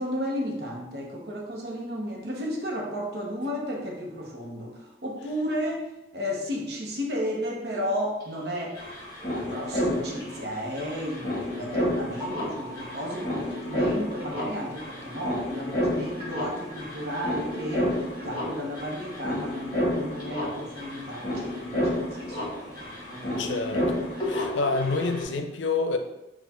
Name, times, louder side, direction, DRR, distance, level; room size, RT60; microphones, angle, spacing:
voice 1, 0.0-8.8 9.3-23.6 24.1-24.2, equal, 60° right, -1 dB, 0.9 m, -33 dB
sound 1, 8.2-8.3 8.5-25.2, left 1 dB, 20° left, 1.5 m, -31 dB
voice 2, 23.4-26.0, left 3 dB, 90° left, 6 dB, 0.5 m, -28 dB
4.2 x 2.4 x 4.2 m, 0.91 s
head